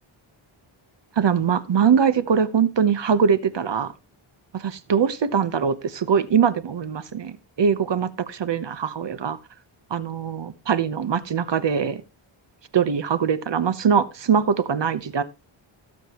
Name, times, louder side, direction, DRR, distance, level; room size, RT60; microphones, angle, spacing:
voice 1, 1.2-3.9 4.5-9.4 9.9-12.0 12.7-15.2, right 7 dB, 55° right, 1.0 m, -22 dB
17.5 x 7.6 x 3.0 m
wide cardioid pair, 100°, 50 cm